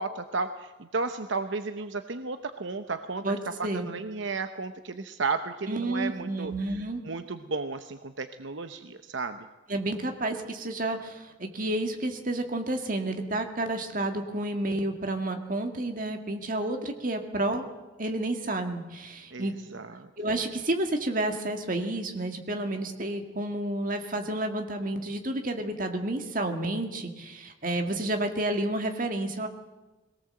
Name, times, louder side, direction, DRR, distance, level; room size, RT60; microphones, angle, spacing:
voice 1, 0.0-3.2 3.6-9.5 19.3-20.1, right 4 dB, 70° right, 9 dB, 0.9 m, -33 dB
voice 2, 3.2-3.9 5.7-7.0 9.7-17.6 18.0-19.5 20.2-29.5, right 1 dB, 45° right, 5 dB, 2.0 m, -30 dB
21.5 x 18.0 x 7.8 m, 1.1 s
head